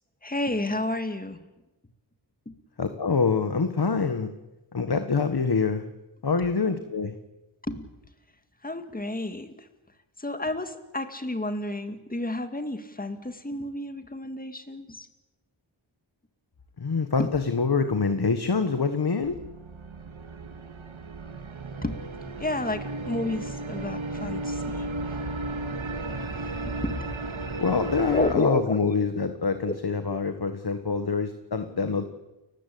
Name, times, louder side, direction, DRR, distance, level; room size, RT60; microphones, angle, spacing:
voice 1, 0.2-1.4 2.5-2.6 7.7-7.9 8.6-9.5 10.2-15.1 17.2-17.3 21.8-22.0 22.4-25.2 26.3-26.9 28.1-28.8 29.7-29.8 30.1-30.2, left 1 dB, 20° left, 8 dB, 2.1 m, -31 dB
voice 2, 2.8-4.3 4.7-5.8 6.2-7.1 16.8-19.4 27.6-32.0, left 5 dB, 50° left, 8 dB, 1.6 m, -25 dB
sound 1, 19.2-28.4, right 2 dB, 75° right, 2.2 m, -34 dB
30.0 x 15.0 x 8.6 m, 1.0 s
wide cardioid pair, 90°, 48 cm